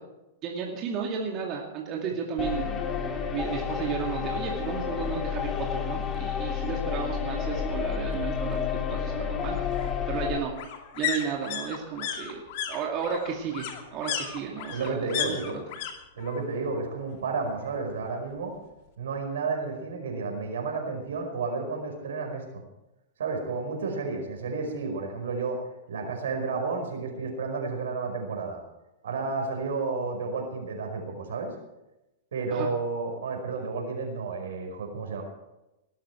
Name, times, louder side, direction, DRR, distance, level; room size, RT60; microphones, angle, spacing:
voice 1, 0.4-2.8 3.3-10.5 10.9-12.4 12.7-15.7 32.5-32.7, right 6 dB, 35° right, 0 dB, 2.5 m, -33 dB
sound 1, 2.4-10.4, left 7 dB, 25° left, 2.3 m, -30 dB
sound 2, 5.0-5.1 5.5-5.6 5.8-6.8 8.1-16.8 17.0-18.1 18.4-18.5, left 9 dB, 55° left, 2.5 m, -35 dB
voice 2, 14.7-15.6 16.1-18.5 19.0-22.6 23.2-28.6 29.0-31.5 32.3-35.2, right 4 dB, 70° right, 3 dB, 5.0 m, -31 dB
19.5 x 13.0 x 4.6 m, 0.96 s
hypercardioid pair, 105°, 0 cm